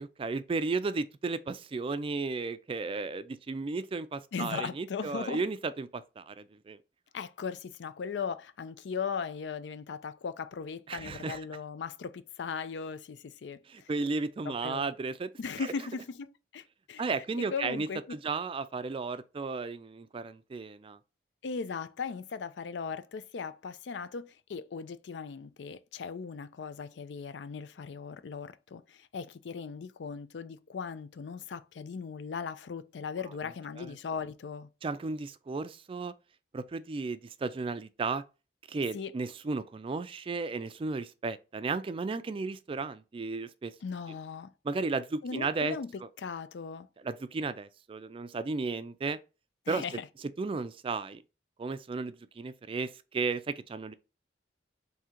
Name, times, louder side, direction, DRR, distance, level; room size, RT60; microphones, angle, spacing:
voice 1, 0.0-6.8 10.9-11.4 13.7-15.3 15.6-15.7 17.0-21.0 33.8-33.9 34.8-36.1 36.5-38.2 38.7-43.7 44.6-45.8 47.0-49.2 49.7-49.8 50.4-51.2 51.6-53.9, right 4 dB, 30° right, 0.3 m, -34 dB
voice 2, 4.3-5.4 7.1-13.9 14.4-14.9 15.4-17.0 17.4-18.0 21.4-34.7 38.9-39.1 43.8-44.5 45.2-45.9 46.2-46.9 49.7-50.1, left 5 dB, 80° left, 0.4 m, -38 dB
3.7 x 2.7 x 4.3 m
head